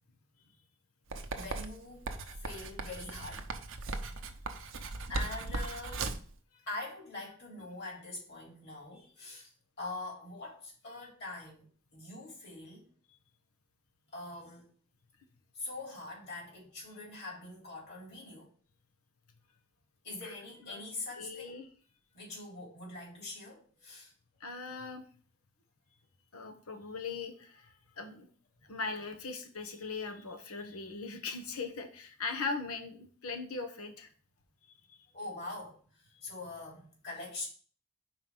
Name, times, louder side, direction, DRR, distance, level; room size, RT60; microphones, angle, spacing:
Writing, 1.1-6.3, right 3 dB, 60° right, 0.7 m, -38 dB
voice 1, 1.3-2.1 2.3-3.6 4.7-4.8 5.1-6.2 6.7-9.5 9.8-11.7 11.9-12.9 14.1-14.7 15.5-18.5 20.0-21.6 22.1-24.1 35.1-37.5, left 2 dB, 50° left, -3 dB, 3.1 m, -43 dB
voice 2, 21.2-21.6 24.4-25.0 26.3-28.3 28.7-34.1 34.9-35.0, left 4 dB, 90° left, 6 dB, 1.2 m, -40 dB
4.8 x 4.5 x 5.4 m, 0.43 s
head